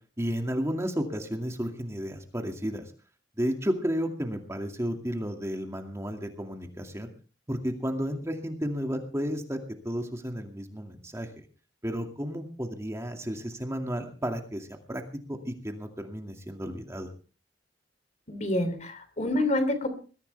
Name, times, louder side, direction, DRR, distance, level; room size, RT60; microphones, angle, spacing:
voice 1, 0.2-2.8 3.4-7.1 7.5-9.6 9.8-11.3 11.8-15.0 15.3-17.1, equal, 15° right, 4 dB, 2.3 m, -32 dB
voice 2, 18.3-19.9, left 1 dB, 40° left, 10 dB, 3.2 m, -27 dB
21.5 x 15.0 x 3.4 m, 0.38 s
head